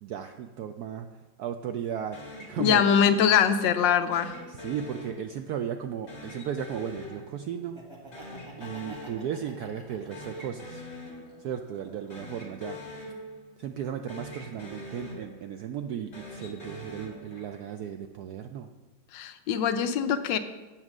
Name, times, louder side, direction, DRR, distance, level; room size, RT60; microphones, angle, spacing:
voice 1, 0.0-2.2 2.5-2.8 4.5-7.8 8.6-10.8 11.4-13.1 13.6-18.7, right 8 dB, 75° right, 7 dB, 0.9 m, -35 dB
sound 1, 2.1-3.6 4.1-5.7 6.1-7.9 8.1-9.6 9.9-11.6 12.0-13.8 14.1-15.7 16.0-17.8, left 1 dB, 35° left, 2.1 m, -44 dB
voice 2, 2.6-4.3 19.1-20.4, left 8 dB, 75° left, 9 dB, 1.3 m, -23 dB
Laughter, 7.6-10.8 11.2-12.3, right 2 dB, 15° right, 1.3 m, -49 dB
8.1 x 7.5 x 6.1 m, 1.2 s
omnidirectional pair, 2.1 m